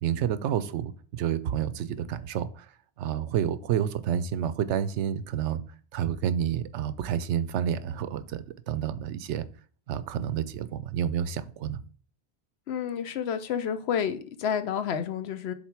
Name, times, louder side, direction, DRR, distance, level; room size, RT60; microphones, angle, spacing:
voice 1, 0.0-2.7 3.0-5.6 5.9-9.5 9.9-11.8, right 9 dB, 90° right, 0.9 m, -29 dB
voice 2, 12.7-15.5, left 8 dB, 70° left, 0.9 m, -30 dB
7.3 x 3.7 x 4.6 m
omnidirectional pair, 1.1 m